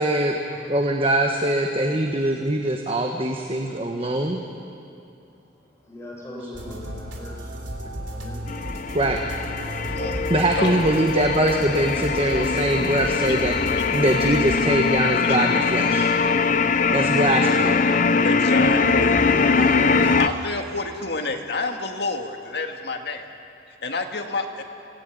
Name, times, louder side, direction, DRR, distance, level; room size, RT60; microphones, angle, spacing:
voice 1, 0.0-0.4 0.7-4.4 8.9-9.2 10.3-13.5 13.9-16.1 16.9-17.8 18.5-20.2, right 1 dB, 30° right, 3 dB, 1.3 m, -23 dB
voice 2, 5.9-7.5 8.1-8.4, left 1 dB, 15° left, -3 dB, 6.5 m, -40 dB
sound 1, 6.5-14.5, equal, 75° right, 3.7 m, -34 dB
sound 2, 8.5-20.3, left 5 dB, 45° left, 0.6 m, -22 dB
voice 3, 9.9-10.8 18.2-19.1 20.2-23.2 23.8-24.6, left 3 dB, 60° left, 4 dB, 2.0 m, -28 dB
27.0 x 17.5 x 9.4 m, 2.7 s
head